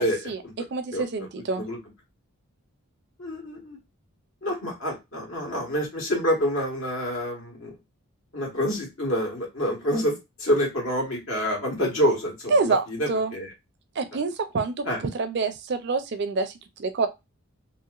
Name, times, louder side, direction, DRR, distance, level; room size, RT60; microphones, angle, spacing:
voice 1, 0.0-0.4 0.7-1.6 12.5-13.3 14.0-14.8 15.1-16.5 16.8-17.1, right 4 dB, 50° right, 0.4 m, -26 dB
voice 2, 3.2-3.8 4.4-7.8 8.3-13.5 14.8-15.0, equal, 65° left, 1.5 m, -27 dB
2.9 x 2.9 x 2.4 m
head